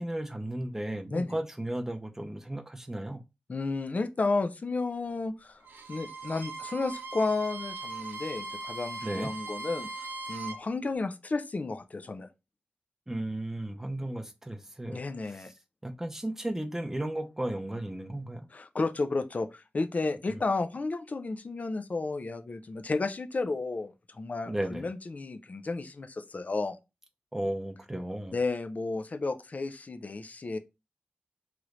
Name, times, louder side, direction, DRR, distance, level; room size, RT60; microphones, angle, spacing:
voice 1, 0.0-3.2 9.0-9.3 13.1-15.0 15.3-15.4 15.8-18.5 20.3-20.4 24.5-24.9 27.3-28.4, right 1 dB, 10° right, 0.5 m, -34 dB
voice 2, 3.5-5.6 5.9-9.9 10.3-12.3 14.9-15.5 18.5-26.8 28.3-30.6, left 3 dB, 45° left, 0.3 m, -32 dB
Bowed string instrument, 5.6-10.6, right 3 dB, 85° right, 0.7 m, -39 dB
3.1 x 3.0 x 2.5 m
wide cardioid pair, 100°, 4 cm